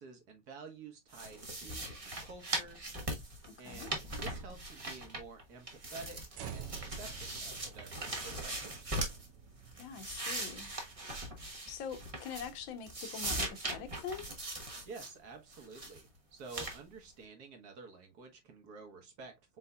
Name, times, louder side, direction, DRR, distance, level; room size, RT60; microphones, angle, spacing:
voice 1, 0.0-2.9 3.6-9.0 14.9-19.6, right 4 dB, 60° right, 1.7 m, -51 dB
sound 1, 1.1-5.4 5.7-9.3 9.7-12.6 12.9-15.1 15.5-16.0 16.5-16.8, right 1 dB, 25° right, 0.8 m, -40 dB
voice 2, 3.5-3.9 9.7-10.7 11.4-14.3, left 7 dB, 85° left, 1.7 m, -44 dB
sound 2, 6.3-12.6, right 8 dB, 75° right, 1.3 m, -51 dB
5.4 x 4.0 x 2.2 m
omnidirectional pair, 2.1 m